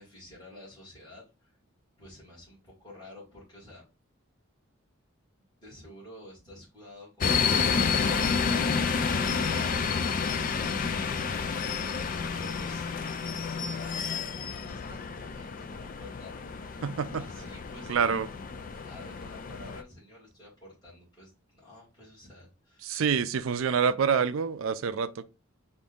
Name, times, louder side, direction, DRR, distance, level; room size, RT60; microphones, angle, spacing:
voice 1, 0.0-1.5 2.0-3.9 5.6-8.8 13.7-18.4 18.8-23.0, left 1 dB, 20° left, 2.2 m, -50 dB
sound 1, 7.2-19.8, left 5 dB, 40° left, 0.3 m, -30 dB
voice 2, 16.8-17.2 17.9-18.3 22.8-25.2, right 6 dB, 70° right, 0.4 m, -27 dB
5.1 x 2.6 x 3.5 m
head